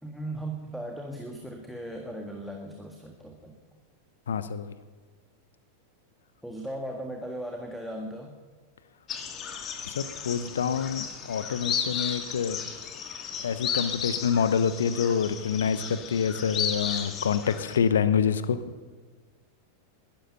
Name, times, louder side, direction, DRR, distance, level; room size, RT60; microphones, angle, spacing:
voice 1, 0.0-3.6 6.4-8.3, right 1 dB, ahead, 2 dB, 1.7 m, -37 dB
voice 2, 4.3-4.7 9.8-12.6 13.4-18.6, left 7 dB, 65° left, 14 dB, 0.9 m, -27 dB
sound 1, 9.1-17.8, left 7 dB, 30° left, 1.7 m, -34 dB
21.0 x 12.0 x 5.6 m, 1.4 s
figure-of-eight pair, 90°, 0 cm